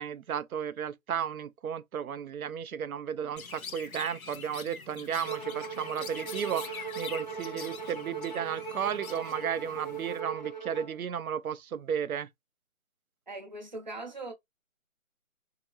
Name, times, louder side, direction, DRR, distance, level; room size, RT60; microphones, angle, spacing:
voice 1, 0.0-12.3, right 8 dB, 90° right, 0.5 m, -34 dB
Chirp tweet, 3.4-10.2, left 6 dB, 80° left, 0.7 m, -45 dB
Bowed string instrument, 5.2-11.0, right 6 dB, 35° left, 0.5 m, -39 dB
voice 2, 13.3-14.3, right 2 dB, 35° right, 0.6 m, -40 dB
3.6 x 2.8 x 2.9 m
figure-of-eight pair, 170°, 42 cm